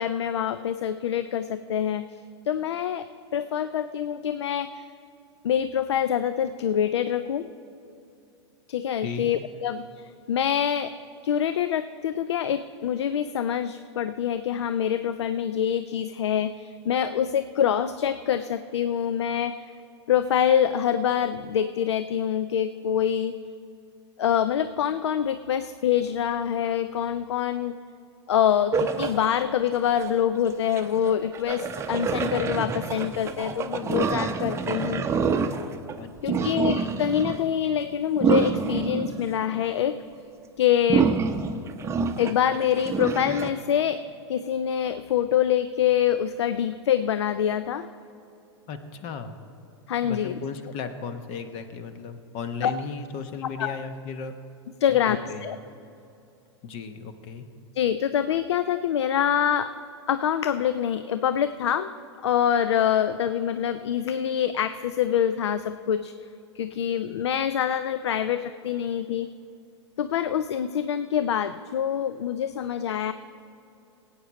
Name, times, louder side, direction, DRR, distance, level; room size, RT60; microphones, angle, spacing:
voice 1, 0.0-2.1 2.5-3.1 3.3-4.8 5.4-7.5 8.7-10.9 11.2-19.7 20.1-23.3 24.2-27.8 28.3-35.0 36.2-40.0 40.6-41.1 42.2-44.0 44.3-47.9 49.9-50.4 52.6-52.7 53.6-53.8 54.8-55.6 57.8-59.7 60.1-61.9 62.2-66.1 66.6-69.3 70.0-73.1, left 9 dB, 75° left, 12 dB, 0.4 m, -25 dB
sound 1, 28.7-29.2 30.0-30.1 30.8-36.0 36.3-37.4 38.2-39.6 40.9-43.5, right 5 dB, 20° right, 0.7 m, -27 dB
voice 2, 34.6-35.0 36.0-36.6 48.7-49.4 50.0-54.4 54.9-55.5 56.6-57.5, left 5 dB, 45° left, 9 dB, 1.0 m, -36 dB
17.0 x 8.8 x 4.1 m, 2.7 s
hypercardioid pair, 100°, 15 cm